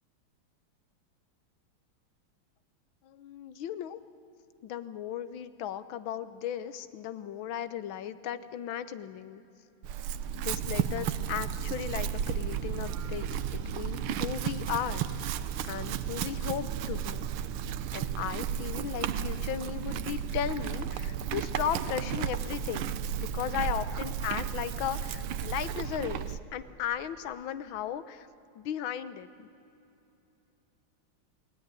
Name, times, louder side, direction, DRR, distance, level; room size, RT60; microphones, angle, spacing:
voice 1, 3.0-4.0 4.6-9.4 10.3-15.3 15.6-17.3 17.9-28.3 28.6-29.5, left 10 dB, 70° left, 13 dB, 1.7 m, -36 dB
Chewing mastication / Livestock farm animals working animals, 9.8-26.4, right 9 dB, 85° right, 1.7 m, -33 dB
28.5 x 18.5 x 9.7 m, 2.9 s
omnidirectional pair, 2.3 m